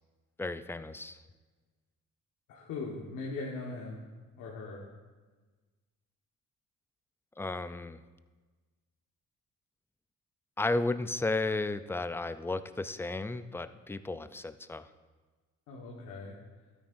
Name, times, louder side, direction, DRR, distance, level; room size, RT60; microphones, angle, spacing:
voice 1, 0.4-1.2 7.4-8.0 10.6-14.9, left 2 dB, 10° left, 12 dB, 0.4 m, -33 dB
voice 2, 2.5-4.1 4.4-4.9 15.7-16.4, left 3 dB, 85° left, -3 dB, 1.4 m, -40 dB
12.5 x 9.5 x 2.6 m, 1.3 s
cardioid pair, 90°, 30 cm